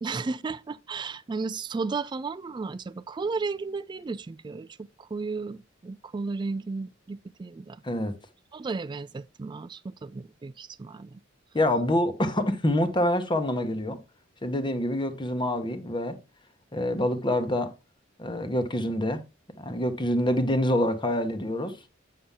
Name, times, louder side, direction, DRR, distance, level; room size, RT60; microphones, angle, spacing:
voice 1, 0.0-7.8 8.5-11.2, right 4 dB, 25° right, 0.3 m, -34 dB
voice 2, 7.8-8.2 11.5-14.0 14.4-16.2 16.7-17.7 18.2-19.2 19.6-21.8, left 1 dB, 25° left, 1.1 m, -26 dB
8.6 x 5.6 x 3.6 m
head